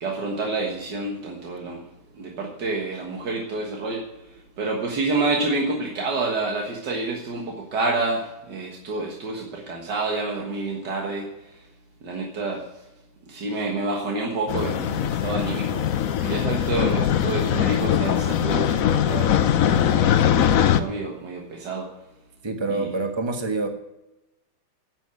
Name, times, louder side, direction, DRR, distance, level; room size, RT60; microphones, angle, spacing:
voice 1, 0.0-1.9 2.1-4.0 4.6-11.3 12.0-12.6 13.3-20.1 20.8-21.9 22.7-22.9, right 3 dB, 90° right, 0 dB, 2.1 m, -28 dB
sound 1, 14.5-20.8, left 9 dB, 60° left, 1.1 m, -21 dB
voice 2, 22.4-23.7, right 3 dB, 20° right, 5 dB, 1.2 m, -26 dB
10.5 x 8.1 x 8.2 m, 0.96 s
omnidirectional pair, 1.8 m